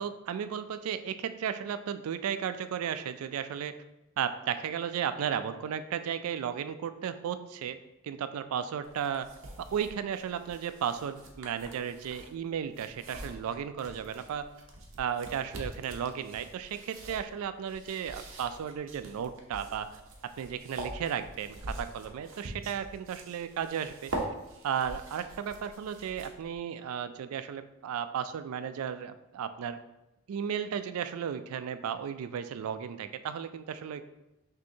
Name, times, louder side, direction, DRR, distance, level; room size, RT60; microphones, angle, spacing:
voice 1, 0.0-3.7 4.2-7.8 8.0-9.3 9.6-14.5 15.0-19.9 20.2-24.1 24.6-29.8 30.3-34.0, right 8 dB, 80° right, 12 dB, 0.3 m, -34 dB
sound 1, 8.8-26.6, right 1 dB, 65° right, 0.7 m, -44 dB
6.2 x 2.7 x 2.7 m, 0.92 s
head